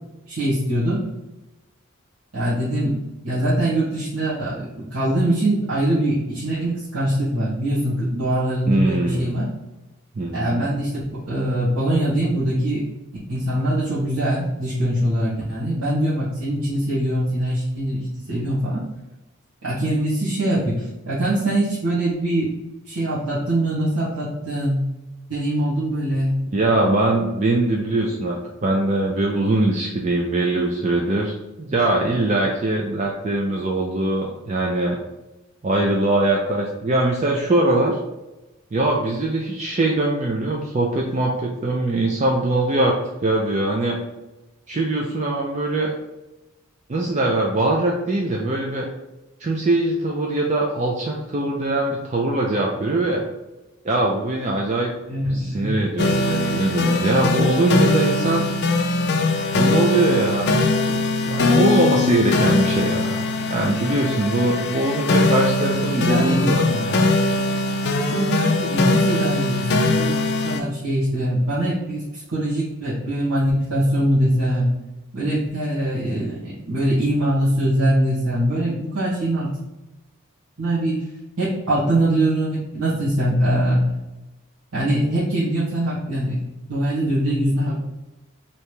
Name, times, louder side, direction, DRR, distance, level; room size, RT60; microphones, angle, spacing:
voice 1, 0.3-1.0 2.3-9.5 10.3-12.8 13.3-18.8 19.6-22.5 22.9-24.8 25.3-26.4 55.1-55.7 65.9-67.1 68.1-74.7 75.1-79.5 80.6-81.0 81.4-83.8 84.7-86.4 86.7-87.9, right 1 dB, 80° right, -11 dB, 1.3 m, -23 dB
voice 2, 8.7-9.3 10.2-10.7 26.5-35.0 35.6-38.0 38.7-42.9 43.2-44.0 44.7-45.9 46.9-48.9 49.4-53.2 53.8-54.9 55.3-58.4 59.5-60.6 60.9-66.6, right 2 dB, 30° right, -1 dB, 0.4 m, -22 dB
sound 1, 56.0-70.6, left 2 dB, 50° left, 0.4 m, -21 dB
3.3 x 2.9 x 4.5 m, 1.0 s
head